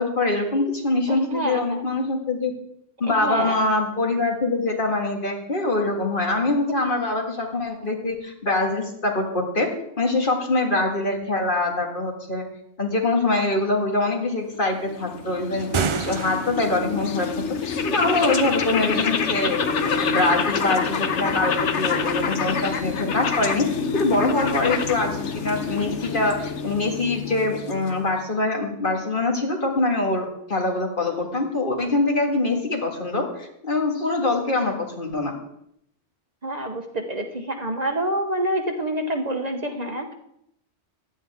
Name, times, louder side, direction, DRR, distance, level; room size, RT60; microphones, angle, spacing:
voice 1, 0.0-2.5 3.0-12.4 12.8-23.7 23.9-35.3, left 2 dB, 50° left, 2 dB, 1.9 m, -24 dB
voice 2, 1.1-1.8 3.1-3.6 36.4-40.1, right 1 dB, 40° right, 4 dB, 1.0 m, -27 dB
sound 1, 14.7-28.1, left 5 dB, 90° left, 1.2 m, -27 dB
sound 2, 15.6-16.9, right 6 dB, 55° right, 0.3 m, -28 dB
16.0 x 10.5 x 3.6 m, 0.76 s
omnidirectional pair, 1.2 m